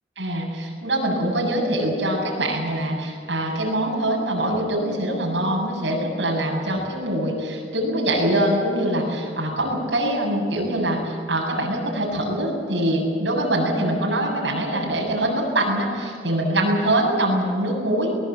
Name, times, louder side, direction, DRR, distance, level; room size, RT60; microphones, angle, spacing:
voice 1, 0.2-18.1, right 1 dB, 80° right, -2 dB, 7.4 m, -23 dB
23.5 x 20.0 x 7.8 m, 2.3 s
head